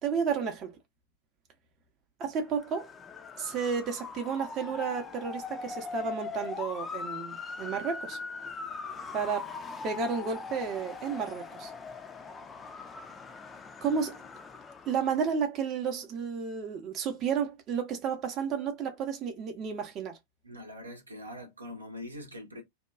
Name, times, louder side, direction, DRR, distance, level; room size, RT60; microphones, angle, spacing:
voice 1, 0.0-0.8 2.2-2.9 3.4-8.2 9.1-9.5 9.8-11.7 13.8-14.2 14.9-20.2, right 6 dB, 35° right, 0.6 m, -32 dB
Motor vehicle (road) / Siren, 2.5-15.2, left 4 dB, 20° left, 0.4 m, -41 dB
voice 2, 20.4-22.6, left 1 dB, 80° right, 0.8 m, -43 dB
2.8 x 2.2 x 2.3 m
figure-of-eight pair, 90°, 0 cm